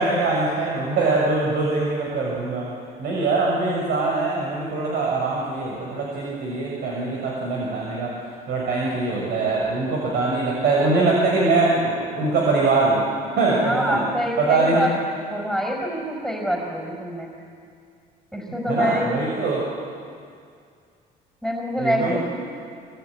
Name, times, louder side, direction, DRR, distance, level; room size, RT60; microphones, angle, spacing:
voice 1, 0.0-2.7 3.0-8.1 8.5-13.0 13.3-14.0 14.4-14.9 18.7-19.6 21.8-22.2, right 3 dB, 70° right, -3 dB, 6.7 m, -22 dB
voice 2, 13.5-14.9 15.3-17.3 18.3-19.1 21.4-22.2, equal, ahead, -1 dB, 5.5 m, -25 dB
25.0 x 24.0 x 9.8 m, 2.3 s
cardioid pair, 110°, 17 cm